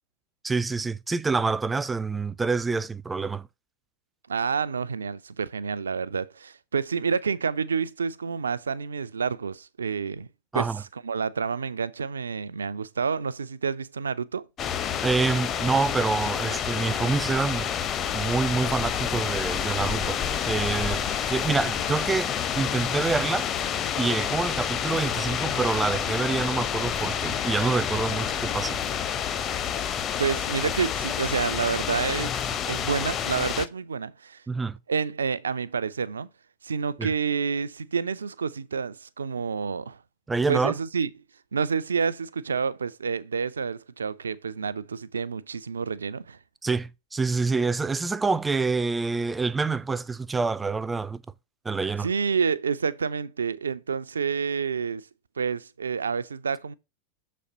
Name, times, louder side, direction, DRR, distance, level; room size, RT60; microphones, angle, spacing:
voice 1, 0.4-3.5 10.5-10.8 15.0-17.7 18.1-23.5 24.0-28.8 34.5-34.8 37.0-37.1 40.3-40.7 46.6-51.2 51.6-52.1, right 4 dB, 10° right, 0.4 m, -27 dB
voice 2, 4.3-10.3 10.5-10.7 11.0-14.5 29.8-29.9 30.2-32.4 32.7-34.4 34.9-36.3 36.6-40.0 40.5-41.1 41.5-46.4 52.0-55.0 55.4-56.7, right 6 dB, 70° right, 0.5 m, -29 dB
sound 1, 14.6-33.7, left 8 dB, 30° left, 0.7 m, -29 dB
6.9 x 4.3 x 5.3 m
figure-of-eight pair, 90°, 0 cm